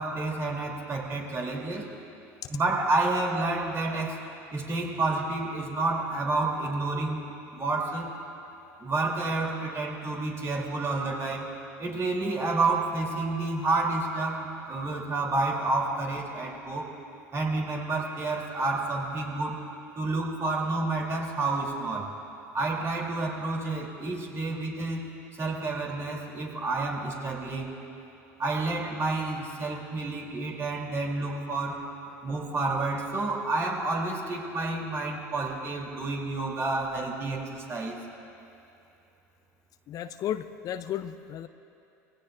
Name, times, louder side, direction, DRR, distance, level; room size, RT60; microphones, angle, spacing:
voice 1, 0.0-1.9 2.5-4.2 4.5-8.1 8.8-11.5 11.8-16.9 17.3-19.6 19.9-22.1 22.5-25.1 25.4-27.8 28.4-31.8 32.2-38.0, right 3 dB, 35° right, -1 dB, 3.2 m, -29 dB
voice 2, 39.9-41.5, left 10 dB, 50° left, 10 dB, 0.5 m, -34 dB
23.0 x 16.5 x 2.6 m, 2.8 s
hypercardioid pair, 80°, 8 cm